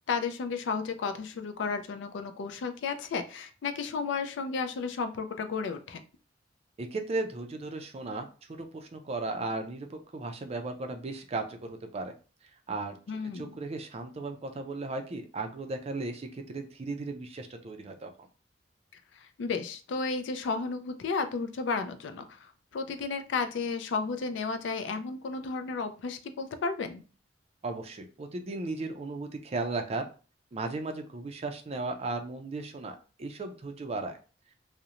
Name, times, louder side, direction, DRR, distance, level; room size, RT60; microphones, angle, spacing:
voice 1, 0.1-6.0 13.1-13.6 19.1-27.0, left 4 dB, 75° left, 9 dB, 0.4 m, -33 dB
voice 2, 6.8-8.3 8.6-12.1 12.7-13.0 13.3-18.1 27.6-30.1 30.5-34.2, right 3 dB, 35° right, 5 dB, 0.4 m, -36 dB
2.5 x 2.0 x 2.8 m, 0.35 s
head